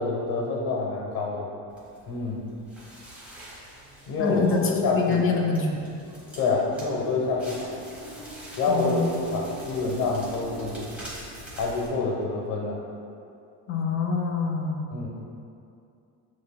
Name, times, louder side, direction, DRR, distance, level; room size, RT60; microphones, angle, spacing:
voice 1, 0.0-1.5 2.1-2.4 4.1-5.3 6.4-7.7 8.6-10.9 11.6-12.8 14.9-15.1, left 3 dB, 60° left, -1 dB, 1.0 m, -27 dB
Crackle, 1.7-11.9, right 1 dB, 5° right, 0.9 m, -44 dB
voice 2, 4.2-5.9 8.7-9.2 13.7-14.9, left 4 dB, 35° left, 0 dB, 0.4 m, -26 dB
7.4 x 3.1 x 2.2 m, 2.5 s
cardioid pair, 170°, 42 cm